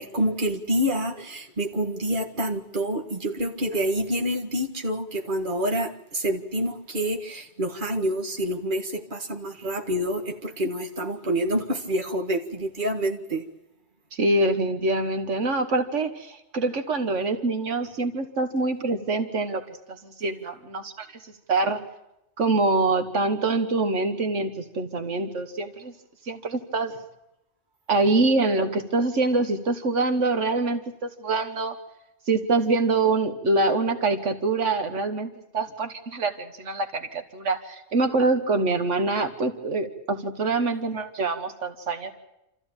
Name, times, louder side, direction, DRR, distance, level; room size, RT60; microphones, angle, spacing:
voice 1, 0.0-13.4, equal, 45° right, 4 dB, 2.0 m, -27 dB
voice 2, 14.1-19.6 19.9-21.8 22.4-25.9 26.2-26.9 27.9-31.8 32.3-42.1, right 3 dB, 80° right, 7 dB, 1.7 m, -25 dB
27.5 x 14.5 x 8.8 m, 0.89 s
omnidirectional pair, 1.2 m